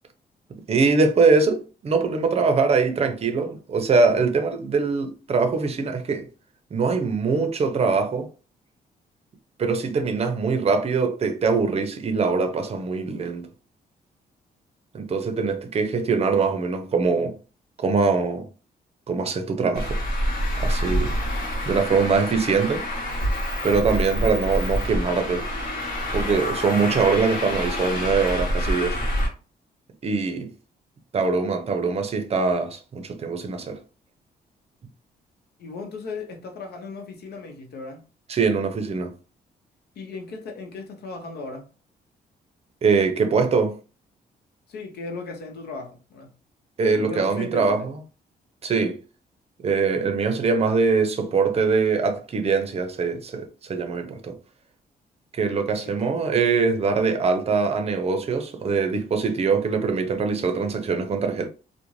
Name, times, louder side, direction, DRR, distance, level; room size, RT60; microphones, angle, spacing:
voice 1, 0.7-6.3 6.7-8.3 9.6-13.5 14.9-17.4 17.8-18.5 19.1-20.0 20.6-21.2 21.7-22.8 23.6-25.5 26.1-29.0 30.0-30.5 31.1-33.8 38.3-39.1 42.8-43.7 46.8-47.9 48.6-49.0 49.6-54.4 55.3-61.5, right 4 dB, 40° right, 0.5 m, -23 dB
Traffic noise roadway noise, 19.7-29.3, equal, 55° left, 1.1 m, -27 dB
voice 2, 35.6-38.0 40.0-41.7 44.7-46.3 47.0-47.8 55.8-56.1, left 3 dB, 75° left, 0.7 m, -36 dB
2.4 x 2.1 x 3.0 m
cardioid pair, 110°, 17 cm